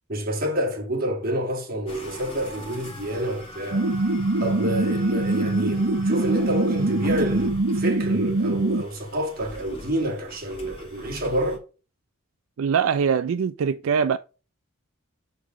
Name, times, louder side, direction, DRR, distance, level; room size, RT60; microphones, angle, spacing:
voice 1, 0.1-3.9 4.4-11.6, right 1 dB, 45° right, 2.4 m, -28 dB
sound 1, 1.9-11.6, equal, 25° left, 3.6 m, -42 dB
sound 2, 3.7-8.8, right 2 dB, 60° right, 0.8 m, -23 dB
voice 2, 12.6-14.2, right 6 dB, 80° right, 0.4 m, -22 dB
6.0 x 5.5 x 6.3 m
head